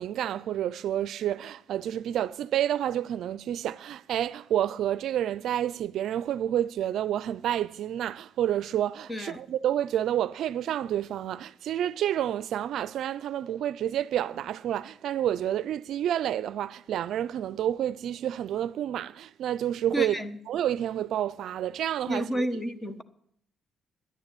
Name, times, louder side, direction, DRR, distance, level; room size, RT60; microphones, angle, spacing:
voice 1, 0.0-20.2 20.5-22.5, right 11 dB, 75° right, 0.4 m, -29 dB
voice 2, 9.1-9.4 19.9-20.4 22.1-23.0, equal, 15° left, 1.2 m, -31 dB
11.0 x 9.9 x 9.0 m
cardioid pair, 90°, 0 cm